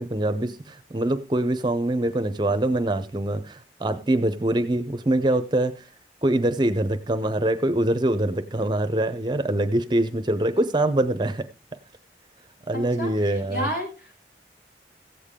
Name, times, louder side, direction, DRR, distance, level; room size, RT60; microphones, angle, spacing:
voice 1, 0.0-5.7 6.2-11.5 12.7-13.7, right 1 dB, 25° right, 10 dB, 0.6 m, -24 dB
voice 2, 12.7-13.1 13.5-14.2, equal, 65° left, -1 dB, 7.6 m, -31 dB
15.0 x 8.4 x 3.7 m, 0.33 s
head